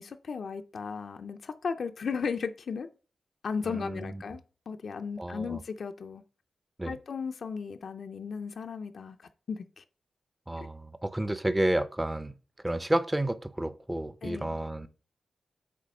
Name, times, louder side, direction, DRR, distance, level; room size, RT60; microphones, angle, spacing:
voice 1, 0.0-2.9 3.4-4.4 4.7-6.2 6.9-9.2 9.5-9.8 10.6-10.7 14.2-14.6, left 5 dB, 70° left, 0.5 m, -35 dB
voice 2, 3.7-4.2 5.2-5.6 6.8-7.0 10.5-12.3 12.6-14.9, right 1 dB, 15° right, 0.6 m, -31 dB
8.4 x 3.0 x 5.3 m
cardioid pair, 80°, 0 cm